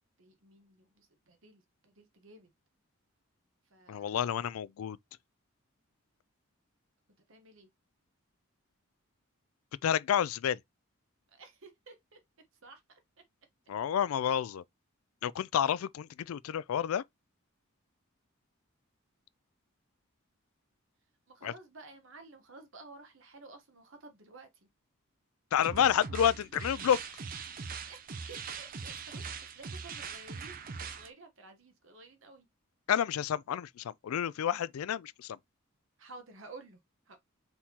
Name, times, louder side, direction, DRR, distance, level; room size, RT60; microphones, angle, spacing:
voice 1, 0.2-2.5 3.6-4.2 7.2-7.7 11.3-13.0 21.3-24.7 27.8-32.5 36.0-37.2, right 3 dB, 65° right, 1.1 m, -53 dB
voice 2, 3.9-5.0 9.8-10.6 13.7-14.6 15.2-17.0 21.4-21.5 25.5-27.0 32.9-35.4, left 9 dB, 90° left, 0.3 m, -29 dB
sound 1, 25.6-31.1, right 5 dB, 40° right, 0.5 m, -41 dB
4.3 x 3.7 x 2.8 m
head